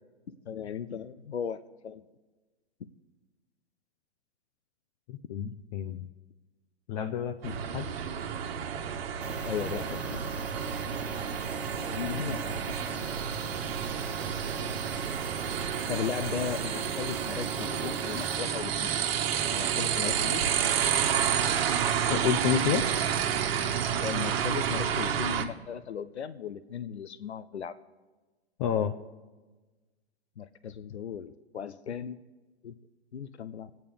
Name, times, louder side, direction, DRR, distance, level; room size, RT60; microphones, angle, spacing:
voice 1, 0.5-2.0 9.4-10.2 11.8-13.0 15.9-19.0 19.5-20.4 24.0-27.8 30.4-32.2 32.6-32.7 33.1-33.7, left 8 dB, 85° left, 13 dB, 0.7 m, -36 dB
voice 2, 5.1-6.0 6.9-7.9 22.1-22.8 28.6-29.0, left 8 dB, 40° left, 7 dB, 0.7 m, -29 dB
sound 1, 7.4-25.5, right 8 dB, 60° right, 1.4 m, -30 dB
sound 2, 9.2-18.4, right 4 dB, 5° right, 0.4 m, -41 dB
27.0 x 9.1 x 3.5 m, 1.3 s
hypercardioid pair, 120°, 32 cm